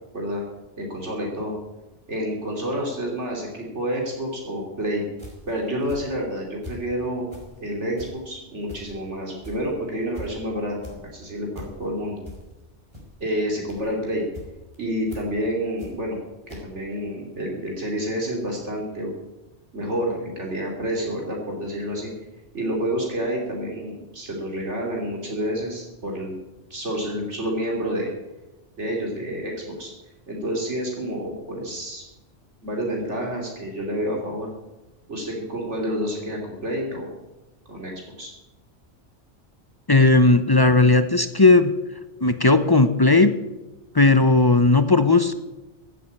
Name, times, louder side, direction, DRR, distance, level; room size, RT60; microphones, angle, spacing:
voice 1, 0.1-0.5 0.8-1.5 2.1-5.0 5.4-7.3 7.6-12.2 13.2-14.3 14.8-16.2 16.5-19.1 19.7-22.1 22.5-26.3 26.7-28.1 28.8-29.9 30.3-32.0 32.6-34.5 35.1-37.1 37.7-37.9 38.2-38.3, equal, 80° right, -1 dB, 3.2 m, -29 dB
sound 1, 5.2-6.9 7.2-16.2 16.5-16.6, left 2 dB, 25° right, 4.2 m, -42 dB
voice 2, 39.9-41.7 42.2-43.3 43.9-45.3, left 3 dB, 25° left, 10 dB, 0.7 m, -16 dB
15.5 x 8.5 x 8.5 m, 1.0 s
omnidirectional pair, 1.2 m